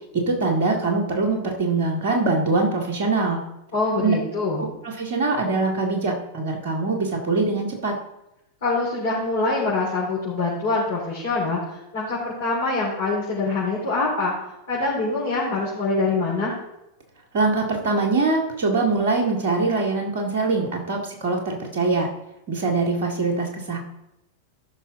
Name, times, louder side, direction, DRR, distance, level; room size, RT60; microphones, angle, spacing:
voice 1, 0.1-3.4 4.0-4.2 4.8-8.0 17.3-22.1 22.5-23.8, right 3 dB, 55° right, 2 dB, 2.1 m, -23 dB
voice 2, 3.7-4.6 8.6-14.3 14.7-16.5, left 3 dB, 55° left, -7 dB, 3.8 m, -24 dB
14.5 x 6.2 x 3.7 m, 0.88 s
figure-of-eight pair, 90°, 0 cm